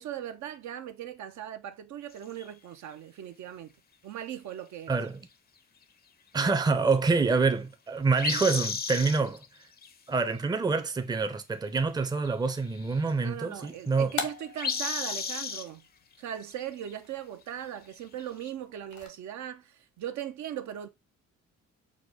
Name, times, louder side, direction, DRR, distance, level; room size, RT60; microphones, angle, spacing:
voice 1, 0.0-3.7 4.0-5.0 13.2-15.8 16.2-20.9, right 10 dB, 70° right, 0.6 m, -39 dB
sound 1, 2.1-2.4 8.2-9.5 9.7-9.9 12.0-12.1 12.2-13.1 13.6-14.1 14.6-15.7 16.3-16.6 16.9-17.0 18.2-18.5, left 6 dB, 30° left, 0.5 m, -34 dB
voice 2, 4.9-5.2 6.3-9.4 10.1-14.1, right 4 dB, 15° right, 0.5 m, -26 dB
sound 2, 13.4-19.1, left 6 dB, 75° left, 1.0 m, -44 dB
4.8 x 2.1 x 3.7 m
cardioid pair, 90°, 30 cm